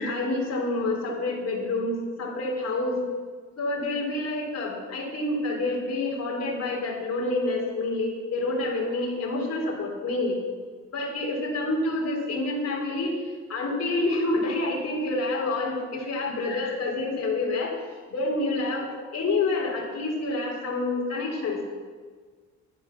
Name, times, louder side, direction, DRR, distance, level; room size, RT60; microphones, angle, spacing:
voice 1, 0.0-3.0 3.6-10.4 10.9-21.6, left 2 dB, 55° left, -1 dB, 4.2 m, -28 dB
12.0 x 11.0 x 6.1 m, 1.5 s
cardioid pair, 90°, 30 cm